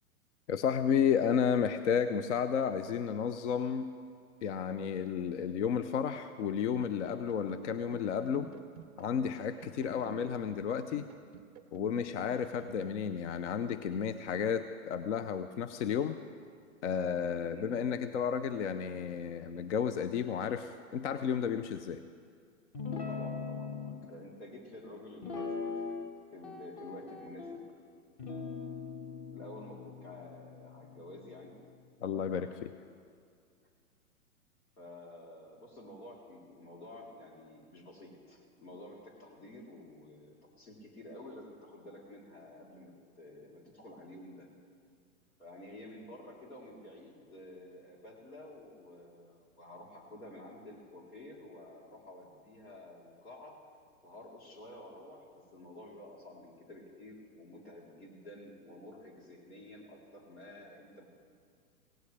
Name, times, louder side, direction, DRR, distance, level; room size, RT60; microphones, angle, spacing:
voice 1, 0.5-3.9 4.4-8.5 9.0-11.1 11.7-16.2 16.8-22.0 32.0-32.7, left 7 dB, 50° left, 11 dB, 0.6 m, -32 dB
sound 1, 6.4-13.2, right 8 dB, 30° right, 0.4 m, -51 dB
voice 2, 9.8-10.1 17.4-17.8 23.1-25.8 26.3-27.6 29.3-31.6 33.6-33.7 34.8-44.5 45.4-53.6 54.0-61.1, left 1 dB, 75° left, -2 dB, 3.6 m, -50 dB
Guitar, 22.7-24.0 25.2-26.1 26.4-27.6 28.2-31.7, left 5 dB, 30° left, 1.6 m, -41 dB
17.0 x 16.5 x 3.3 m, 2.1 s
hypercardioid pair, 125°, 44 cm